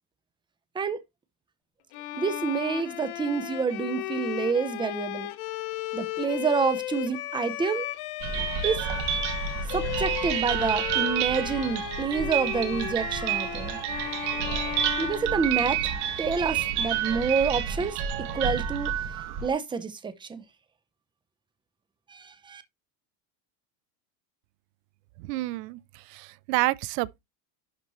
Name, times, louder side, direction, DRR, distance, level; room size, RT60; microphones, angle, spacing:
Bowed string instrument, 1.9-16.0, left 15 dB, 55° left, 0.9 m, -35 dB
voice 1, 2.1-5.3 5.9-7.9 8.6-8.8 9.7-13.8 15.0-15.9 16.2-18.0 18.3-18.9 19.4-20.4 22.1-22.6, right 5 dB, 10° right, 0.7 m, -28 dB
sound 1, 8.2-19.5, right 9 dB, 55° right, 1.7 m, -29 dB
voice 2, 25.2-27.2, right 19 dB, 85° right, 0.6 m, -29 dB
11.0 x 4.2 x 3.1 m
supercardioid pair, 135°, 47 cm